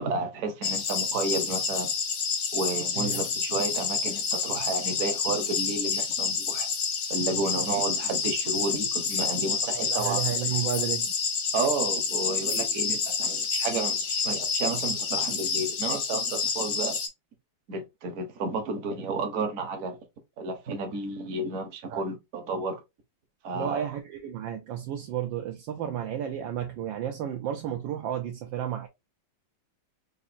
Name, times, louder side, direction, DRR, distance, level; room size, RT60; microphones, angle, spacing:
voice 1, 0.0-1.9 2.5-6.7 7.1-10.2 11.5-17.0 17.7-20.0 20.4-22.8 23.4-23.9, right 3 dB, 50° right, 1.0 m, -31 dB
sound 1, 0.6-17.1, left 5 dB, 65° left, 1.1 m, -29 dB
voice 2, 9.7-11.1 21.9-22.0 23.5-28.9, right 10 dB, 75° right, 1.1 m, -32 dB
4.9 x 2.6 x 2.6 m
omnidirectional pair, 2.4 m